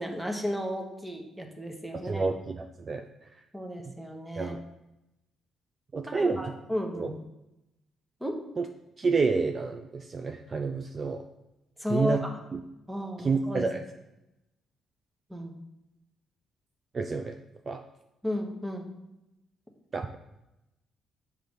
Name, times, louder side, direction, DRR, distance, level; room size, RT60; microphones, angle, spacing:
voice 1, 0.0-2.3 3.5-4.6 6.1-7.2 8.2-8.4 11.8-12.4 12.9-13.7 15.3-15.5 18.2-18.9, equal, 5° right, 3 dB, 1.1 m, -33 dB
voice 2, 1.9-3.1 4.4-4.6 5.9-6.5 6.9-7.1 8.6-8.7 9.0-11.2 11.9-12.2 12.5-12.6 13.2-13.8 16.9-17.4 17.7-17.8 19.9-20.2, right 4 dB, 35° right, 6 dB, 0.4 m, -29 dB
7.7 x 3.3 x 5.2 m, 0.91 s
cardioid pair, 90°, 0 cm